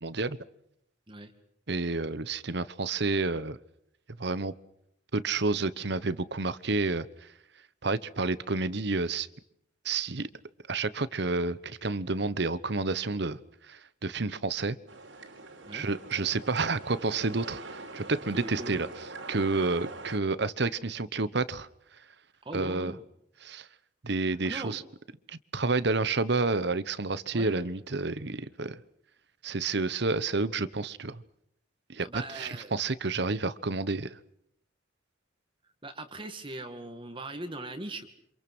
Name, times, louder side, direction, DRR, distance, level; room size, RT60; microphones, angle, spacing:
voice 1, 0.0-0.4 1.7-3.6 4.2-4.5 5.1-7.3 7.8-9.3 9.8-10.3 10.7-14.8 15.7-21.7 22.5-22.9 23.4-23.7 24.0-24.8 25.3-28.8 29.4-31.2 31.9-34.2, right 3 dB, 60° right, 16 dB, 1.1 m, -30 dB
sound 1, 14.9-20.2, right 3 dB, 80° right, 4.1 m, -43 dB
voice 2, 18.3-18.8 22.4-23.0 24.4-24.8 27.3-27.7 32.0-32.8 35.8-38.1, right 2 dB, 25° right, 6 dB, 2.1 m, -40 dB
28.5 x 26.5 x 6.2 m, 0.74 s
head